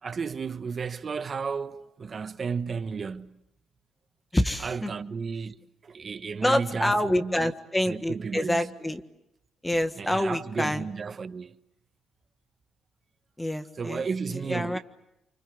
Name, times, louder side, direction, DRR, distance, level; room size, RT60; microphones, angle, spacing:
voice 1, 0.0-3.4 4.6-7.5 7.8-8.7 10.0-11.6 13.8-14.8, right 5 dB, 40° right, 1.4 m, -33 dB
voice 2, 4.3-4.9 6.4-9.0 9.6-10.9 13.4-14.0 14.3-14.8, left 1 dB, 10° left, 1.5 m, -27 dB
29.5 x 25.0 x 8.0 m
cardioid pair, 90°, 0 cm